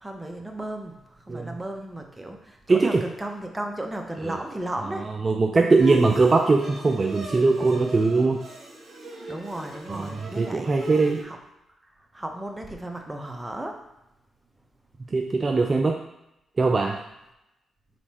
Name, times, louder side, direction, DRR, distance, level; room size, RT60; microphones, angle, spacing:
voice 1, 0.0-5.0 9.3-10.9 11.2-11.4 12.1-13.8, right 1 dB, 15° right, 3 dB, 0.8 m, -35 dB
voice 2, 2.7-3.0 4.2-4.4 5.2-8.4 9.9-11.2 15.1-16.0 16.6-17.0, right 3 dB, 40° right, 3 dB, 0.4 m, -21 dB
Bowed string instrument, 5.8-11.2, equal, 65° right, 1.4 m, -37 dB
4.2 x 4.2 x 2.9 m, 0.88 s
supercardioid pair, 60°, 0 cm